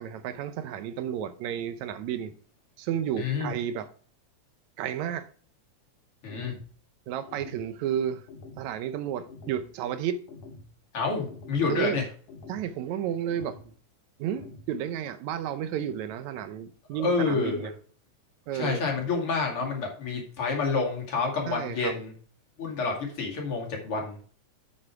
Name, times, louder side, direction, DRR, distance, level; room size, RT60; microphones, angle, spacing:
voice 1, 0.0-2.3 2.8-3.9 4.8-5.3 7.1-8.2 8.6-10.2 11.7-12.0 12.5-13.7 14.2-17.7 18.5-18.9 21.5-22.0, right 9 dB, 75° right, 1.9 m, -32 dB
voice 2, 3.2-3.5 6.2-6.5 10.9-12.0 16.9-17.7 18.5-22.1 22.6-24.2, left 4 dB, 45° left, 3.0 m, -28 dB
sound 1, 6.3-6.7 7.3-7.7 8.3-8.7 9.3-9.7 10.3-10.7 11.3-11.7 12.3-12.7 13.3-13.7 14.3-14.7, left 3 dB, 70° left, 2.8 m, -46 dB
7.6 x 6.6 x 4.7 m
omnidirectional pair, 3.6 m